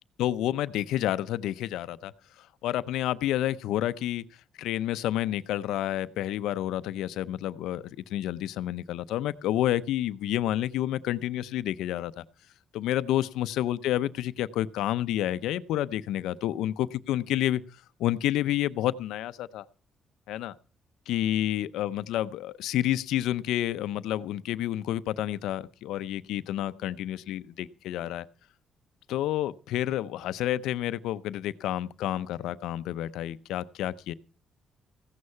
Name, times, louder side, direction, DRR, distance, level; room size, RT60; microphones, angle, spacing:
voice 1, 0.2-2.1 2.4-4.2 4.6-12.2 12.7-17.6 18.0-19.6 20.3-20.5 21.1-28.3 29.1-34.1, left 13 dB, 90° left, 0.6 m, -29 dB
15.5 x 9.7 x 5.6 m
cardioid pair, 90°, 0 cm